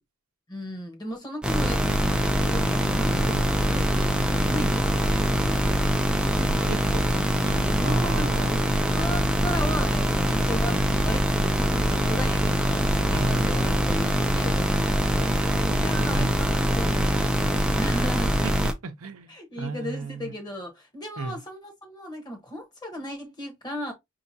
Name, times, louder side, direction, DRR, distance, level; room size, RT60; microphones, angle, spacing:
voice 1, 0.5-5.9 7.5-18.4 19.3-23.9, left 1 dB, 20° left, 1.1 m, -36 dB
sound 1, 1.4-18.7, equal, 5° right, 0.5 m, -23 dB
sound 2, 1.6-16.6, equal, 70° left, 1.0 m, -45 dB
voice 2, 3.1-3.5 6.3-8.7 13.1-13.5 16.1-16.3 18.4-18.5 18.8-19.3 19.6-20.3 21.2-21.4, right 3 dB, 70° right, 0.7 m, -35 dB
5.5 x 2.9 x 2.7 m
head